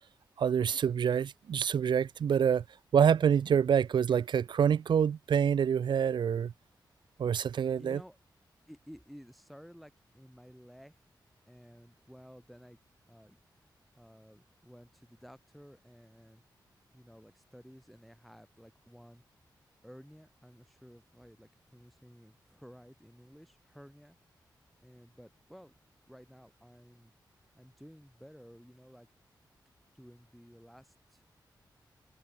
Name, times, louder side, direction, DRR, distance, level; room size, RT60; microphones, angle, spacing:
voice 1, 0.4-2.6 2.9-6.5 7.2-8.0, right 8 dB, 75° right, 0.6 m, -26 dB
voice 2, 7.8-8.2 8.7-11.1 11.5-12.8 13.1-16.4 16.9-19.2 19.8-24.2 24.8-25.7 26.1-27.1 27.5-29.1 29.9-31.3, equal, ahead, 6.7 m, -54 dB
wide cardioid pair, 165°, 8 cm